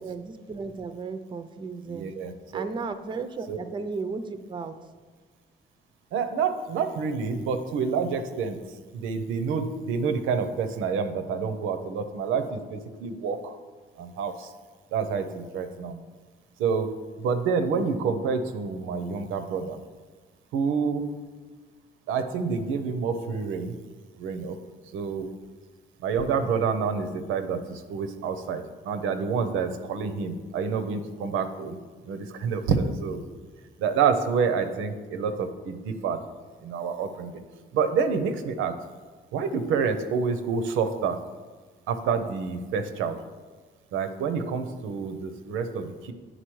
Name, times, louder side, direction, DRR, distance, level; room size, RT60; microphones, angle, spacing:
voice 1, 0.0-2.1 2.5-4.7, right 4 dB, 25° right, 9 dB, 0.4 m, -34 dB
voice 2, 1.9-2.7 3.5-3.6 6.1-13.5 14.0-14.5 14.9-16.0 16.6-19.8 20.5-21.2 22.1-23.7 24.2-24.6 24.9-25.3 26.0-31.8 32.0-33.2 33.8-36.2 36.6-37.4 37.7-38.8 39.3-41.2 41.9-43.2 43.9-46.1, right 5 dB, 90° right, 8 dB, 0.5 m, -28 dB
8.9 x 4.0 x 3.1 m, 1.4 s
cardioid pair, 90°, 20 cm